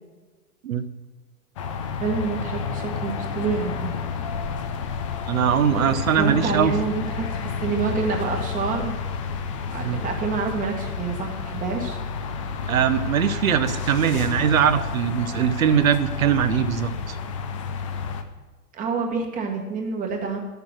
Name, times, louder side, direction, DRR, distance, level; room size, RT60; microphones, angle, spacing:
sound 1, 1.6-18.2, left 5 dB, 20° left, 0.5 m, -30 dB
voice 1, 2.0-3.9 5.9-9.0 9.7-12.0 18.7-20.4, right 4 dB, 15° right, 2 dB, 1.4 m, -28 dB
voice 2, 5.3-6.7 9.8-10.0 12.7-17.2, right 8 dB, 60° right, 12 dB, 0.9 m, -21 dB
10.5 x 6.9 x 6.1 m, 1.3 s
figure-of-eight pair, 115°, 47 cm